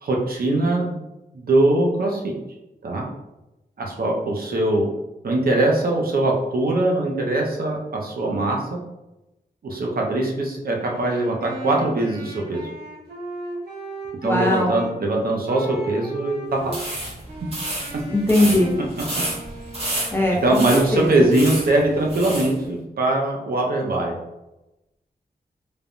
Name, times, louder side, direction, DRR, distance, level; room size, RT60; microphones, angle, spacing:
voice 1, 0.0-1.0 1.3-2.3 2.8-3.0 3.8-4.9 5.2-8.8 9.6-12.6 14.2-16.9 19.9-20.1 20.4-24.1, right 2 dB, 65° right, 0 dB, 0.6 m, -22 dB
Wind instrument woodwind instrument, 10.8-15.0 15.4-16.9 17.3-20.5, right 1 dB, 90° right, 0.9 m, -36 dB
voice 2, 14.2-14.8 18.1-18.7 20.1-21.3, left 1 dB, 15° left, -3 dB, 0.5 m, -20 dB
sound 1, 16.6-22.5, right 1 dB, 40° right, 1.2 m, -30 dB
3.2 x 2.1 x 2.5 m, 0.96 s
wide cardioid pair, 120°, 16 cm